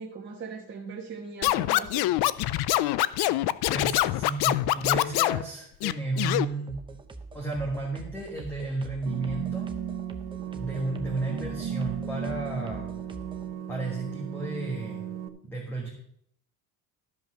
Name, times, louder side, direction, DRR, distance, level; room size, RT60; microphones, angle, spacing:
voice 1, 0.0-2.0 11.1-11.4, right 4 dB, 30° right, -4 dB, 1.4 m, -40 dB
Scratching (performance technique), 1.4-5.4 5.8-6.4, left 16 dB, 75° left, 0.5 m, -24 dB
voice 2, 3.7-6.7 7.3-9.7 10.5-12.8 13.7-15.0 15.4-15.9, right 2 dB, 5° left, -2 dB, 1.5 m, -32 dB
sound 1, 6.7-13.5, right 2 dB, 15° right, 0.7 m, -44 dB
sound 2, 9.1-15.3, right 10 dB, 70° right, 1.0 m, -35 dB
13.0 x 5.4 x 6.2 m, 0.70 s
cardioid pair, 170°, 39 cm